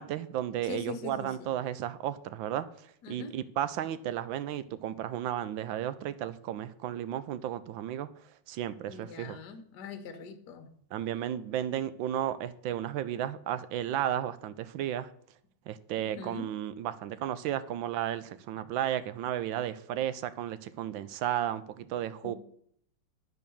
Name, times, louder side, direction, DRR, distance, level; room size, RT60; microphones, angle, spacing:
voice 1, 0.0-8.1 8.5-9.4 10.9-15.1 15.7-22.4, right 11 dB, 80° right, 14 dB, 1.3 m, -33 dB
voice 2, 0.6-1.5 3.0-3.3 8.9-10.7 16.0-16.5 22.2-22.4, left 6 dB, 60° left, 7 dB, 1.5 m, -42 dB
10.0 x 4.6 x 6.9 m, 0.66 s
omnidirectional pair, 2.2 m